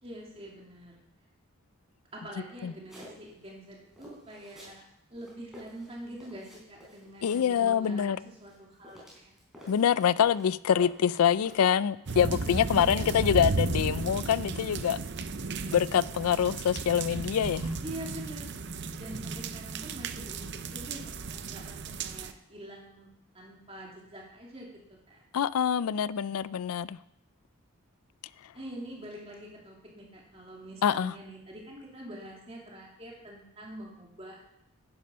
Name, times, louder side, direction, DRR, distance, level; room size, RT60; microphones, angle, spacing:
voice 1, 0.0-1.0 2.1-4.8 5.1-9.3 12.6-13.3 17.8-18.5 19.0-23.1 23.3-24.7 25.1-25.2 28.5-34.4, right 1 dB, 25° right, 2.6 m, -45 dB
sound 1, 2.9-3.5 4.0-4.8 5.1-7.8 8.4-10.5 10.8-11.8, left 1 dB, ahead, 3.8 m, -50 dB
voice 2, 7.2-8.2 9.7-15.0 15.7-17.7 25.3-27.0 30.8-31.1, left 8 dB, 85° left, 0.4 m, -25 dB
sound 2, 12.1-22.3, right 4 dB, 50° right, 0.6 m, -34 dB
10.0 x 9.7 x 5.5 m
head